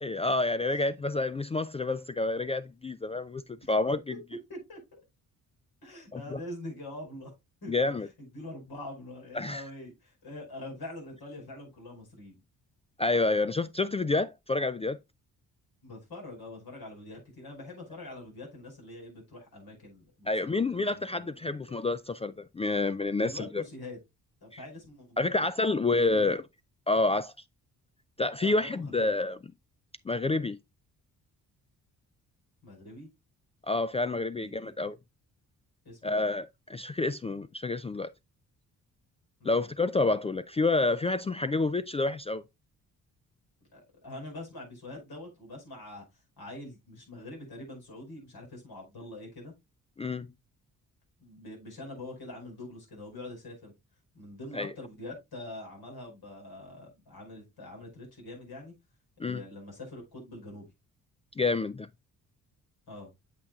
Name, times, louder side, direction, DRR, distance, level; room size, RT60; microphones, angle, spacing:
voice 1, 0.0-4.1 6.1-6.4 7.7-8.1 9.3-9.6 13.0-15.0 20.3-23.6 24.5-24.6 25.2-26.4 26.9-27.3 28.2-29.5 30.1-30.6 33.6-35.0 36.0-38.1 39.4-42.4 50.0-50.3 54.5-54.7 59.2-59.4 61.4-61.9, left 3 dB, 15° left, 0.3 m, -28 dB
voice 2, 4.5-5.0 5.8-7.3 7.6-7.8 8.2-12.4 15.8-21.7 23.2-24.0 24.4-25.4 26.1-26.4 28.4-29.1 32.6-33.1 34.4-34.5 35.8-36.3 39.4-39.7 43.7-46.0 46.4-49.5 51.2-53.7 54.1-58.7 59.2-60.7 62.9-63.1, left 1 dB, 60° left, 5.1 m, -44 dB
8.5 x 6.7 x 2.3 m
hypercardioid pair, 45°, 42 cm